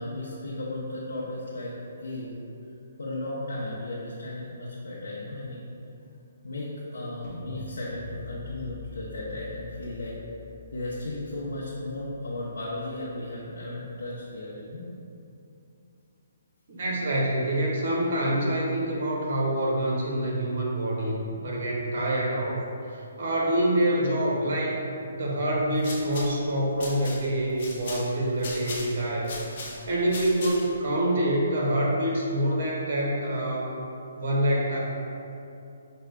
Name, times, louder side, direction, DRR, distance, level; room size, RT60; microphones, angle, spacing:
voice 1, 0.0-1.7 2.0-2.3 3.0-5.6 6.4-10.1 10.7-14.8, left 1 dB, 90° left, -7 dB, 0.7 m, -35 dB
sound 1, 7.2-13.2, left 4 dB, 15° left, 0.9 m, -45 dB
voice 2, 16.7-24.8 25.1-29.4 29.7-33.7 34.2-34.8, right 1 dB, 55° right, -3 dB, 1.0 m, -26 dB
sound 2, 25.6-30.8, left 2 dB, 50° left, 0.8 m, -40 dB
5.9 x 2.2 x 3.3 m, 2.7 s
hypercardioid pair, 155°, 0 cm